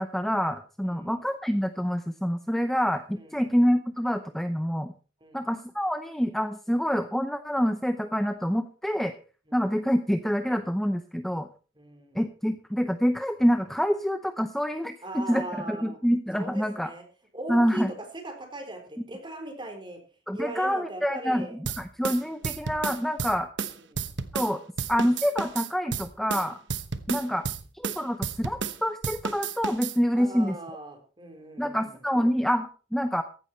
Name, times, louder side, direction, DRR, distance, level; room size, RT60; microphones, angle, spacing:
voice 1, 0.0-4.9 5.3-9.1 9.5-11.5 12.1-16.9 17.5-17.9 20.3-21.5 21.8-23.5 24.3-24.6 24.9-26.6 27.1-27.5 27.7-30.5 31.6-33.2, equal, ahead, 8 dB, 0.6 m, -26 dB
voice 2, 0.8-1.2 3.1-3.5 5.2-5.5 9.5-9.7 11.7-12.2 15.0-16.0 16.3-17.0 17.3-20.0 20.3-21.6 23.9-24.1 27.1-27.4 30.1-32.0, right 1 dB, 25° right, 4 dB, 4.1 m, -39 dB
sound 1, 21.6-24.5 24.8-28.8 29.0-30.0, right 5 dB, 75° right, 1.1 m, -32 dB
15.0 x 11.5 x 4.4 m, 0.37 s
head